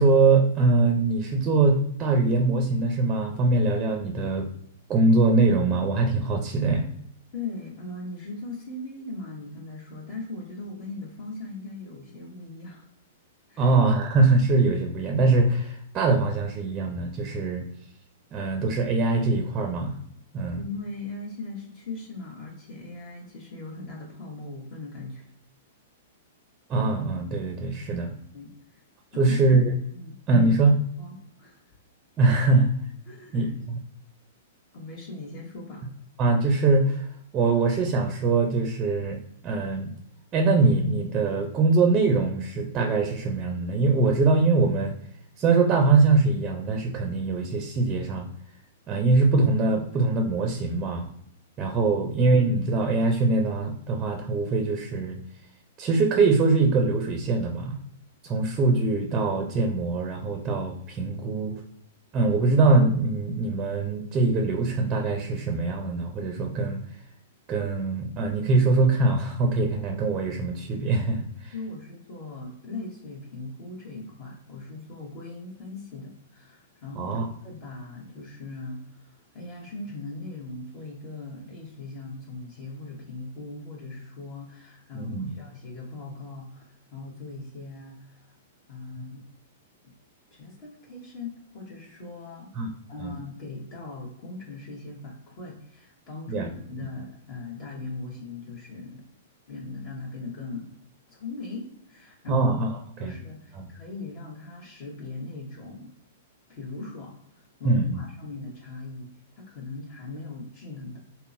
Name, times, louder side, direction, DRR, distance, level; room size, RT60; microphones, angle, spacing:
voice 1, 0.0-4.5 4.9-6.9 13.6-17.7 18.3-20.0 20.3-20.6 26.7-28.1 29.2-29.7 30.3-30.8 32.2-32.7 33.3-33.8 36.2-39.2 39.4-39.9 40.3-45.0 45.4-48.3 48.9-51.1 51.6-55.2 55.8-57.8 58.2-61.6 62.1-66.8 67.5-71.5 77.0-77.3 84.9-85.3 92.5-92.7 93.0-93.1 96.3-96.5 102.3-102.7 103.0-103.1 103.6-103.7 107.6-108.0, right 3 dB, 25° right, 2 dB, 0.5 m, -23 dB
voice 2, 7.3-12.9 13.5-13.8 20.5-25.3 28.3-28.8 29.1-29.4 29.9-30.2 31.0-31.6 33.1-33.6 34.7-35.8 71.5-77.2 77.4-88.3 88.7-89.2 89.8-89.9 90.3-92.5 92.9-99.0 99.5-100.7 101.1-102.5 103.0-105.9 106.5-111.0, left 3 dB, 45° left, -3 dB, 1.2 m, -39 dB
3.6 x 2.1 x 2.5 m, 0.70 s
hypercardioid pair, 115°, 0 cm